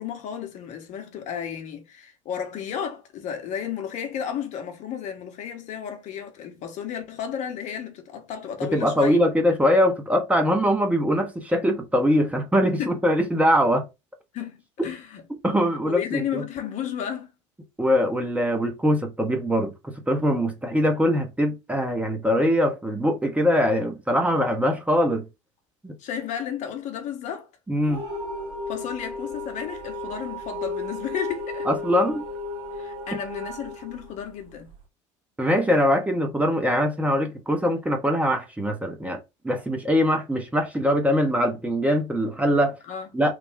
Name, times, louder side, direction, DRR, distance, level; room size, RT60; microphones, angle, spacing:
voice 1, 0.0-9.2 12.8-13.0 14.3-15.2 15.9-17.3 26.0-27.5 28.7-31.7 32.7-34.7 42.9-43.2, left 8 dB, 50° left, 1.0 m, -33 dB
voice 2, 8.7-13.8 15.4-16.4 17.8-25.2 25.8-25.9 27.7-28.0 31.7-32.2 35.4-42.7 43.1-43.3, equal, 10° right, 0.9 m, -22 dB
sound 1, 27.9-34.8, left 2 dB, 40° right, 1.6 m, -34 dB
3.3 x 2.3 x 3.5 m
hypercardioid pair, 70°, 16 cm